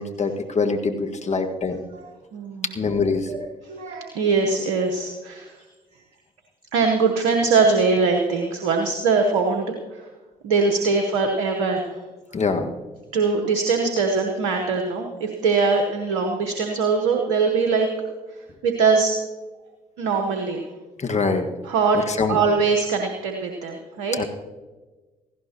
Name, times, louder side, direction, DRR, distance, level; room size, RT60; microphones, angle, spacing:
voice 1, 0.0-1.8 2.7-3.3 10.9-11.0 12.3-12.7 21.0-21.5 21.9-22.4 24.1-24.3, left 4 dB, 40° left, 4 dB, 1.6 m, -24 dB
voice 2, 2.3-2.7 3.3-3.4 3.7-5.5 6.7-10.0 10.4-12.0 13.1-17.9 18.6-19.1 20.0-20.6 21.7-22.0 22.3-24.2, right 4 dB, 85° right, 3 dB, 1.0 m, -22 dB
17.5 x 15.5 x 2.9 m, 1.2 s
hypercardioid pair, 45°, 18 cm